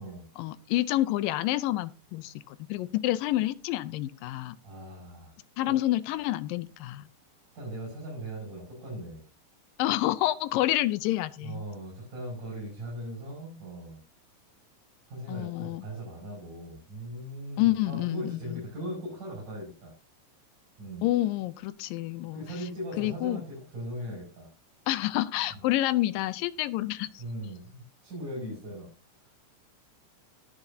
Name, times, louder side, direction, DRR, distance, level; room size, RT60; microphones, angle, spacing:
voice 1, 0.4-4.6 5.6-7.1 9.8-11.6 15.3-15.9 17.6-18.6 21.0-22.7 23.0-23.4 24.9-27.2, left 15 dB, 85° left, 15 dB, 2.4 m, -28 dB
voice 2, 4.6-5.3 5.6-5.7 7.6-9.2 11.4-14.0 15.1-19.9 20.8-21.1 22.3-24.5 25.6-25.7 27.2-28.9, right 1 dB, 65° right, -4 dB, 8.0 m, -39 dB
21.5 x 7.3 x 2.8 m, 0.31 s
omnidirectional pair, 4.0 m